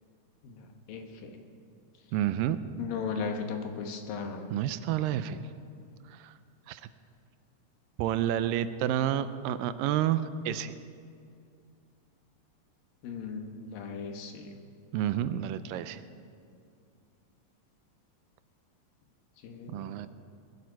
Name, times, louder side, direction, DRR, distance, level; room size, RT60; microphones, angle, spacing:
voice 1, 0.4-1.4 2.8-4.5 13.0-14.6 19.4-19.9, left 5 dB, 85° left, 4 dB, 3.0 m, -37 dB
voice 2, 2.1-2.6 4.5-5.4 6.1-6.3 6.7-6.8 8.0-10.7 14.9-16.0 19.7-20.1, right 11 dB, 85° right, 13 dB, 2.3 m, -29 dB
21.0 x 12.0 x 4.7 m, 2.4 s
omnidirectional pair, 3.9 m